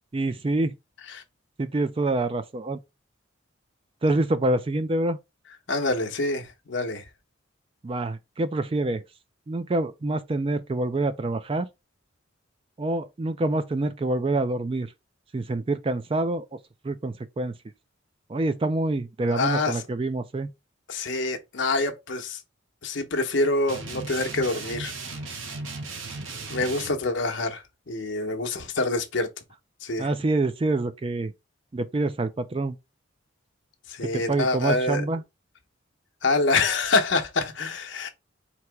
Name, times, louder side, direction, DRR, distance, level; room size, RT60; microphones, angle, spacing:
voice 1, 0.1-0.7 1.6-2.8 4.0-5.2 7.8-9.0 9.5-11.7 12.8-14.9 15.3-16.5 16.8-17.5 18.3-20.5 30.0-31.3 31.7-32.8 34.0-35.2, right 2 dB, 25° right, 0.3 m, -26 dB
voice 2, 5.7-7.1 19.3-19.8 20.9-22.4 22.8-24.9 26.5-29.3 29.8-30.1 33.9-35.0 36.2-38.1, left 3 dB, 65° left, 0.9 m, -26 dB
sound 1, 23.7-26.9, right 3 dB, 75° right, 0.9 m, -36 dB
4.4 x 2.9 x 3.4 m
head